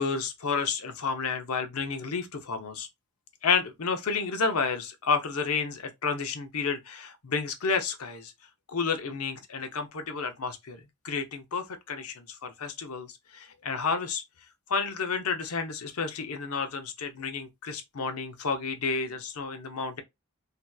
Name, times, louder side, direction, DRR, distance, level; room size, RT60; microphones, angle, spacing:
voice 1, 0.0-2.9 3.4-8.3 8.7-10.8 11.0-13.1 13.3-14.2 14.7-20.0, left 5 dB, 80° left, 0.7 m, -30 dB
3.3 x 2.8 x 2.3 m
head